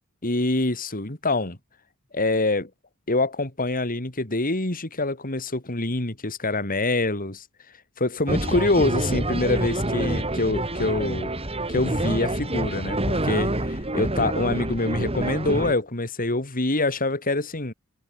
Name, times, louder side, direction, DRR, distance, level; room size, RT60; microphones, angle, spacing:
voice 1, 0.2-1.6 2.1-2.7 3.1-7.4 8.0-11.3 11.7-17.7, left 2 dB, 40° left, 3.4 m, -25 dB
sound 1, 8.3-15.7, right 1 dB, 25° right, 4.5 m, -27 dB
head